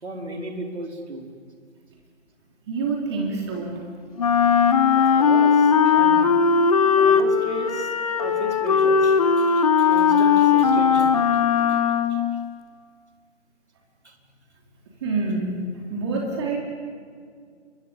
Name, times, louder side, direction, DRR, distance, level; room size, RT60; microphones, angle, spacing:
voice 1, 0.0-1.3 4.9-6.3 6.9-7.9 8.2-11.2 11.7-11.8 12.1-12.2 14.0-14.1, right 1 dB, 70° right, 3 dB, 5.0 m, -35 dB
voice 2, 2.7-3.9 15.0-16.6, right 3 dB, 25° right, 0 dB, 3.0 m, -27 dB
Wind instrument woodwind instrument, 4.2-12.3, left 6 dB, 30° left, 1.3 m, -18 dB
28.5 x 24.0 x 8.6 m, 2.1 s
figure-of-eight pair, 150°, 35 cm